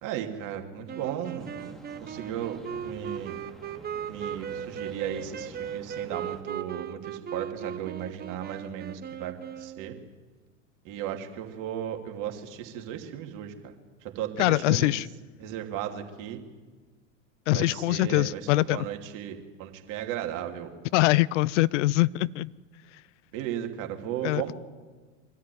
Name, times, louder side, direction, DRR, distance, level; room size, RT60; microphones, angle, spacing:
voice 1, 0.0-3.3 4.1-9.9 10.8-13.7 14.0-15.0 15.4-16.4 17.5-20.7 23.3-24.5, right 10 dB, 55° right, 4 dB, 2.8 m, -35 dB
sound 1, 0.9-10.0, right 8 dB, 25° right, 1.1 m, -38 dB
sound 2, 1.4-6.4, right 1 dB, ahead, 2.6 m, -49 dB
voice 2, 14.4-15.1 17.5-18.9 20.9-22.5 24.2-24.5, left 18 dB, 70° left, 22 dB, 0.6 m, -23 dB
23.5 x 13.0 x 9.3 m, 1.4 s
hypercardioid pair, 85°, 38 cm